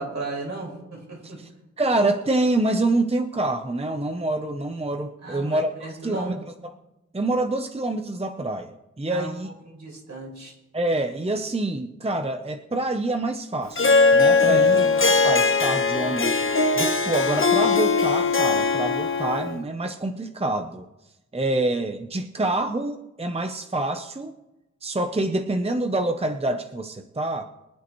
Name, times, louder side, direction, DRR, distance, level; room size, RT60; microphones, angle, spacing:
voice 1, 0.0-1.4 5.2-6.4 9.1-9.3 9.7-10.5 14.4-14.9, right 3 dB, 65° right, -3 dB, 5.5 m, -35 dB
voice 2, 1.8-5.7 6.0-6.4 7.1-9.5 10.7-20.9 21.3-24.3 24.8-27.5, right 2 dB, 20° right, 6 dB, 0.8 m, -26 dB
Harp, 13.8-19.6, left 4 dB, 45° left, 1.1 m, -20 dB
24.0 x 11.0 x 3.1 m, 0.97 s
wide cardioid pair, 110°, 30 cm